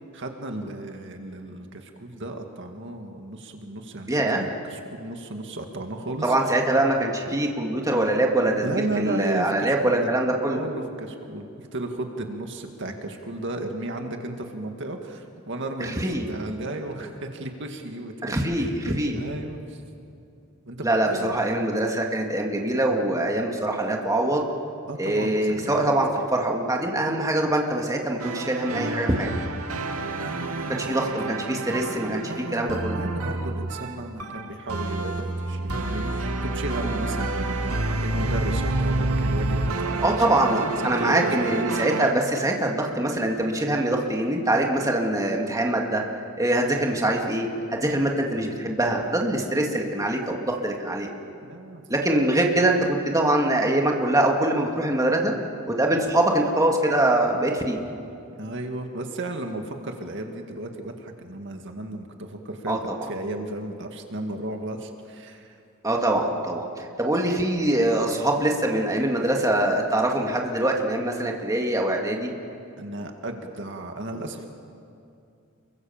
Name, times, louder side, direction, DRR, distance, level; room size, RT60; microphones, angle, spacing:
voice 1, 0.1-6.3 8.6-10.1 10.5-19.8 20.7-21.4 24.9-25.9 30.2-31.3 32.2-41.6 51.4-51.8 58.4-65.6 72.8-74.5, right 1 dB, 60° right, 4 dB, 2.1 m, -34 dB
voice 2, 4.1-4.4 6.2-8.7 9.0-10.6 16.0-16.2 18.2-19.2 20.8-24.5 25.0-29.3 30.7-33.0 40.0-46.0 46.4-51.1 51.9-55.3 55.7-57.8 62.7-62.8 65.8-72.3, right 1 dB, 15° right, 0 dB, 2.4 m, -23 dB
sound 1, 28.2-42.1, right 2 dB, 90° right, 2.1 m, -29 dB
29.0 x 24.0 x 7.3 m, 2.6 s
head